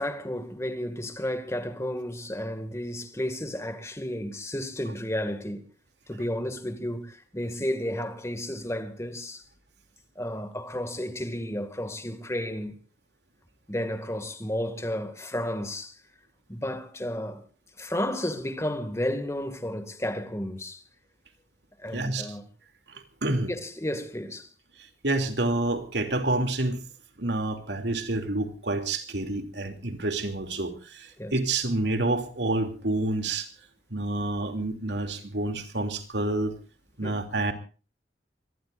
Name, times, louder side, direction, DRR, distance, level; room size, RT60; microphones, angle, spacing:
voice 1, 0.0-5.7 6.1-9.4 10.2-12.8 13.7-15.9 16.5-17.4 17.8-20.8 21.8-22.4 23.5-24.5 31.2-31.3 37.0-37.1, left 1 dB, 15° left, 2.2 m, -32 dB
voice 2, 21.9-22.3 22.9-23.5 25.0-26.8 27.2-33.5 33.9-36.5 37.0-37.5, right 2 dB, 75° right, 3.0 m, -28 dB
25.5 x 19.0 x 2.6 m
head